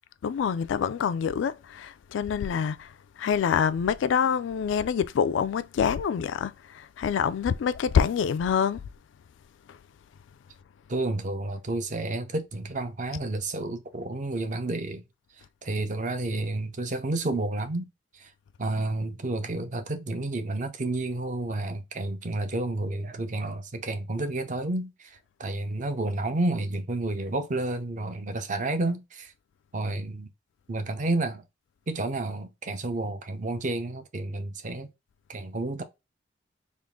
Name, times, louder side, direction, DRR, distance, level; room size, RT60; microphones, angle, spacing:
voice 1, 0.2-2.9 3.2-8.8, left 7 dB, 90° left, 0.3 m, -26 dB
voice 2, 10.9-15.0 15.6-17.9 18.1-18.3 18.6-29.3 29.7-30.3 30.7-31.5 31.9-34.9 35.3-35.8, right 2 dB, 40° right, 0.6 m, -30 dB
3.6 x 2.4 x 3.5 m
head